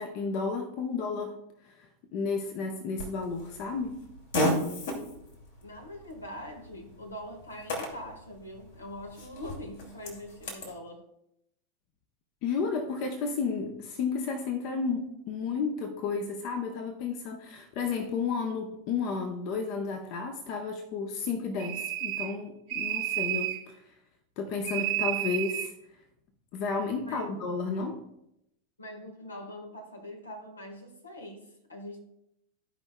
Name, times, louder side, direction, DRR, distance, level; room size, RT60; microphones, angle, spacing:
voice 1, 0.0-1.4 2.1-4.0 12.4-23.8 24.4-25.7 26.5-28.0, left 5 dB, 45° left, 1.0 m, -32 dB
Fart, 3.0-10.7, equal, 60° left, 2.5 m, -35 dB
voice 2, 5.6-11.1 27.0-27.4 28.8-32.0, left 1 dB, 80° left, 1.6 m, -43 dB
sound 1, 21.6-22.4 22.7-23.7 24.6-25.7, right 13 dB, 40° right, 1.1 m, -31 dB
15.0 x 5.3 x 2.3 m
figure-of-eight pair, 90°, 0 cm